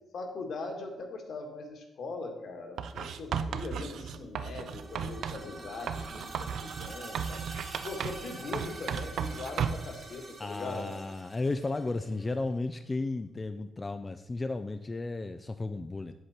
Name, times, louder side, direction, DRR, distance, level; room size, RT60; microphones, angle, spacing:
voice 1, 0.1-7.4 7.8-10.9 12.0-12.1, left 3 dB, 65° left, 2 dB, 1.8 m, -40 dB
Writing, 2.8-5.5 5.9-8.3 8.5-9.9, right 7 dB, 75° right, 0.4 m, -35 dB
sound 1, 4.5-12.3, right 3 dB, 40° right, 1.2 m, -46 dB
voice 2, 10.4-16.1, left 3 dB, 25° left, 9 dB, 0.4 m, -34 dB
8.0 x 7.9 x 4.3 m, 0.90 s
cardioid pair, 120°, 0 cm